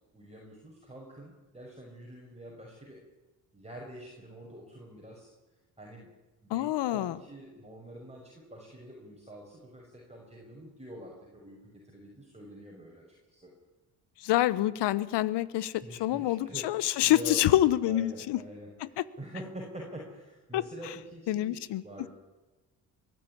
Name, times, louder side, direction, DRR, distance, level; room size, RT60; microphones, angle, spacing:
voice 1, 0.1-3.0 3.5-5.3 5.8-6.1 6.4-13.0 13.3-13.5 15.8-16.7 17.0-17.5 17.8-22.1, equal, 15° right, -2 dB, 6.2 m, -46 dB
voice 2, 6.5-7.2 14.2-18.4 19.0-19.1 20.5-20.6 21.3-21.8, left 14 dB, 70° left, 20 dB, 1.1 m, -27 dB
22.0 x 13.0 x 10.0 m, 1.2 s
supercardioid pair, 60°, 43 cm